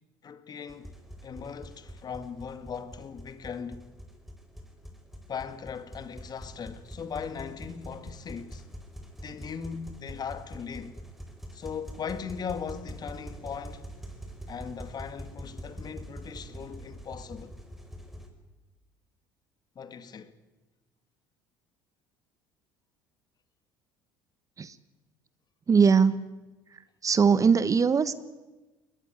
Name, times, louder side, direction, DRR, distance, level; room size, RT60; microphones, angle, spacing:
voice 1, 0.2-1.0 1.2-3.8 5.3-8.6 9.2-11.0 11.5-13.9 14.5-17.5 19.8-20.3, left 6 dB, 40° left, 2.0 m, -39 dB
sound 1, 0.7-18.3, equal, ahead, 5.0 m, -44 dB
voice 2, 25.7-26.3 26.7-28.1, right 6 dB, 35° right, 1.3 m, -21 dB
21.5 x 20.0 x 9.6 m
hypercardioid pair, 70°, 10 cm